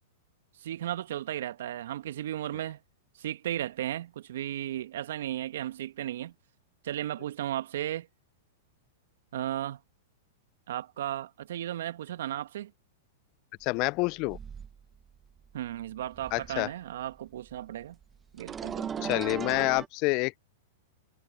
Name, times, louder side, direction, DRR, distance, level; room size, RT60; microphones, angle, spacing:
voice 1, 0.6-2.8 3.2-6.3 6.8-8.1 9.3-9.8 10.7-12.7 15.5-18.0 18.3-19.3, right 12 dB, 65° right, 1.7 m, -35 dB
voice 2, 13.6-14.4 16.3-16.7 19.0-20.4, left 27 dB, 45° left, 0.4 m, -28 dB
sound 1, 13.8-13.9 14.2-15.1 15.4-16.7 17.0-19.9, right 7 dB, 20° right, 1.2 m, -38 dB
hypercardioid pair, 105°, 0 cm